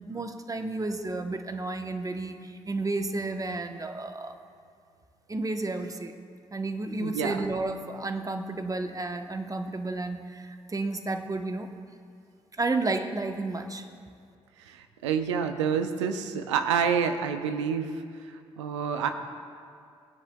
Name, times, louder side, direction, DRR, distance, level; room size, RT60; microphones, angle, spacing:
voice 1, 0.0-4.4 5.3-6.1 6.5-11.7 12.6-13.8, right 2 dB, 25° right, 7 dB, 0.9 m, -32 dB
voice 2, 7.0-7.5 14.6-19.1, right 7 dB, 85° right, 8 dB, 0.5 m, -28 dB
19.5 x 10.0 x 2.2 m, 2.3 s
hypercardioid pair, 40°, 15 cm